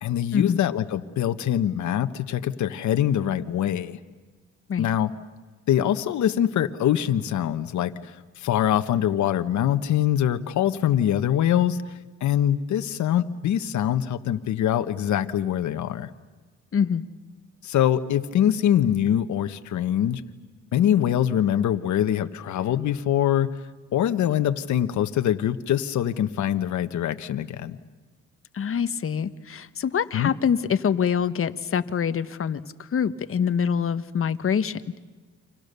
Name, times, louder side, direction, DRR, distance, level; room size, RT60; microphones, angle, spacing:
voice 1, 0.0-4.0 4.8-5.1 5.7-11.8 12.2-16.1 17.6-20.2 20.7-27.8 30.1-30.3, left 10 dB, 70° left, 8 dB, 1.4 m, -24 dB
voice 2, 16.7-17.0 28.5-35.0, left 7 dB, 45° left, 12 dB, 1.4 m, -25 dB
30.0 x 26.5 x 6.9 m, 1.3 s
cardioid pair, 90°, 30 cm